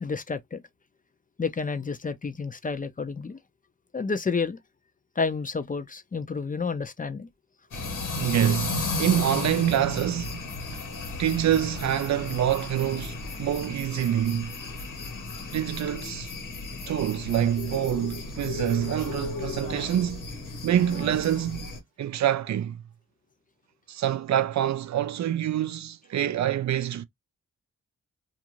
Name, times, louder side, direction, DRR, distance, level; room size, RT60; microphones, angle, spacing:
voice 1, 0.0-0.6 1.4-3.4 3.9-4.6 5.2-7.3, left 4 dB, 25° left, 0.5 m, -30 dB
sound 1, 7.7-21.8, left 3 dB, 90° left, 1.2 m, -34 dB
voice 2, 8.2-10.4 10.7-10.8 11.2-14.5 15.5-16.3 16.9-20.2 20.6-21.7 22.0-22.8 23.9-27.0, right 11 dB, 65° right, 0.5 m, -26 dB
2.5 x 2.5 x 3.0 m
cardioid pair, 50°, 31 cm